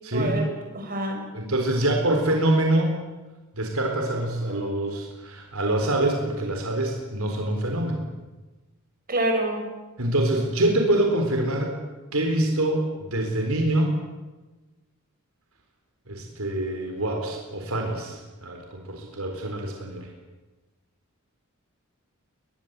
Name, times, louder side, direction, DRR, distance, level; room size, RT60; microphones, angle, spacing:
voice 1, 0.1-0.5 0.7-1.3 9.1-9.7, right 1 dB, 40° right, 1 dB, 6.9 m, -26 dB
voice 2, 1.3-3.0 3.5-8.0 10.0-11.7 12.1-13.9 16.1-20.1, right 1 dB, 80° right, 3 dB, 4.1 m, -25 dB
22.5 x 22.0 x 8.2 m, 1.2 s
head